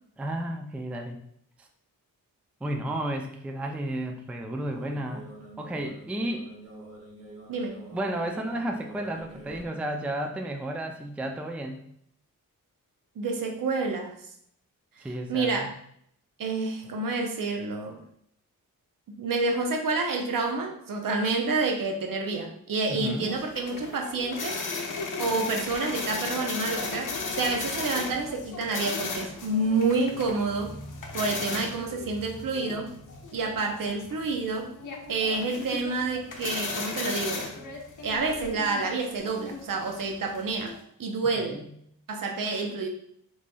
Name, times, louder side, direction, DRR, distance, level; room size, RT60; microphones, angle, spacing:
voice 1, 0.2-1.2 2.6-5.3 5.6-6.5 7.9-11.8 15.0-15.7 22.9-23.3 41.4-41.6, right 1 dB, 5° right, 3 dB, 0.3 m, -32 dB
sound 1, 4.7-9.7, right 1 dB, 45° right, 1.1 m, -46 dB
voice 2, 13.2-14.2 15.0-15.7 16.4-18.0 19.2-24.6 25.2-30.7 31.1-32.9 33.3-34.7 35.1-37.5 38.0-40.7 41.0-41.6 42.1-42.9, right 3 dB, 70° right, 3 dB, 0.7 m, -28 dB
sound 2, 22.9-40.8, left 4 dB, 65° left, 0.7 m, -36 dB
4.0 x 3.1 x 2.2 m, 0.68 s
wide cardioid pair, 90°, 34 cm